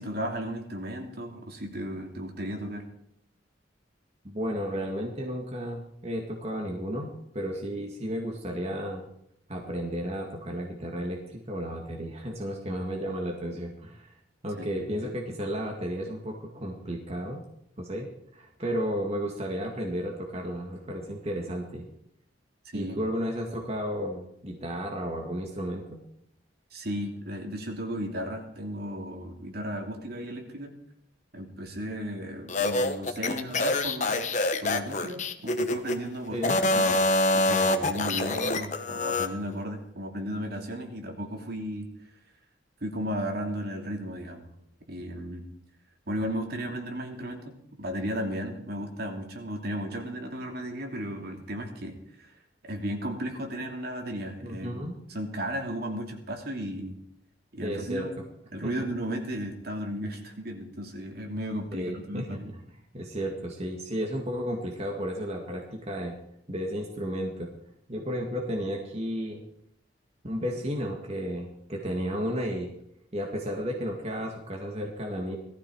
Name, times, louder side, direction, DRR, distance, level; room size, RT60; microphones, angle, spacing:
voice 1, 0.0-2.9 14.6-14.9 22.6-23.0 26.7-30.7 31.3-34.3 34.6-37.0 37.3-41.9 42.8-44.5 44.9-45.5 46.1-52.3 52.6-54.8 55.1-57.0 57.5-58.2 58.5-62.5, equal, 55° right, 3 dB, 3.0 m, -35 dB
voice 2, 4.2-9.1 9.5-14.1 14.4-17.4 17.8-18.1 18.3-21.9 22.7-26.0 36.3-36.6 54.4-55.0 57.6-58.1 58.6-58.7 61.7-62.4 62.9-66.2 66.5-67.5 67.9-69.4 70.2-72.7 73.1-75.4, equal, 35° right, 1 dB, 2.1 m, -33 dB
sound 1, 32.5-36.0 36.4-39.3, left 2 dB, 40° left, 1.2 m, -26 dB
18.5 x 14.0 x 4.8 m, 0.76 s
head